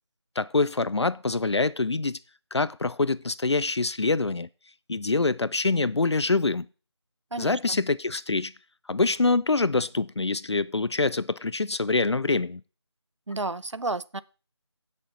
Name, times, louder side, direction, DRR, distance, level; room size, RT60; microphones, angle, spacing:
voice 1, 0.4-2.2 2.5-4.5 4.9-6.7 7.4-8.5 8.9-12.6, left 3 dB, 65° left, 0.5 m, -25 dB
voice 2, 7.3-7.8 13.3-14.2, right 3 dB, 75° right, 0.8 m, -31 dB
16.5 x 6.5 x 4.1 m
figure-of-eight pair, 170°, 15 cm